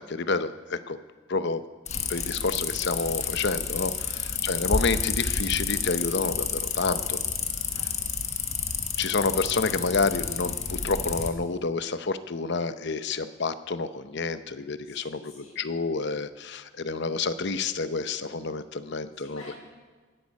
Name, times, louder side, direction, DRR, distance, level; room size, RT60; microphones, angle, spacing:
voice 1, 0.1-1.0 1.3-1.6 2.1-7.2 9.0-19.4, left 4 dB, 55° left, 12 dB, 0.7 m, -29 dB
sound 1, 1.9-11.3, left 6 dB, 30° left, 1.1 m, -30 dB
voice 2, 4.1-4.4 7.6-8.3 14.8-15.6 19.2-19.6, left 2 dB, 90° left, -1 dB, 6.0 m, -51 dB
18.0 x 14.5 x 5.4 m, 1.4 s
head